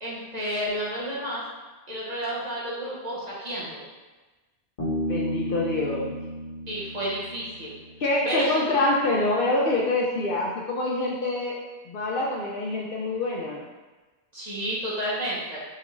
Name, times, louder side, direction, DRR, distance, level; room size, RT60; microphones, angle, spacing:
voice 1, 0.0-1.4 1.9-3.8 6.7-7.7 8.2-8.5 14.3-15.6, right 1 dB, 40° right, -7 dB, 0.8 m, -31 dB
Bass guitar, 4.8-8.3, equal, 35° left, 0.9 m, -33 dB
voice 2, 5.1-6.1 8.0-11.6 11.9-13.6, left 2 dB, 60° left, -3 dB, 0.7 m, -26 dB
4.7 x 2.3 x 3.0 m, 1.2 s
omnidirectional pair, 1.2 m